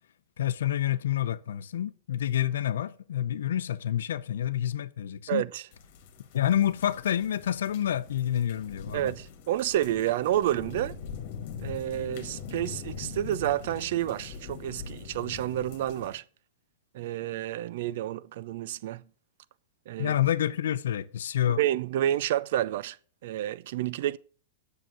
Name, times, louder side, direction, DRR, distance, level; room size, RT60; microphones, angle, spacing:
voice 1, 0.4-5.4 6.3-9.1 20.0-21.6, left 11 dB, 85° left, 0.6 m, -28 dB
voice 2, 5.3-5.7 8.9-11.0 11.6-16.2 16.9-19.0 19.9-20.1 21.6-23.0 23.2-24.2, right 12 dB, 60° right, 0.5 m, -29 dB
sound 1, 5.7-16.2, left 6 dB, 55° left, 1.7 m, -42 dB
7.7 x 6.7 x 6.1 m
supercardioid pair, 150°, 0 cm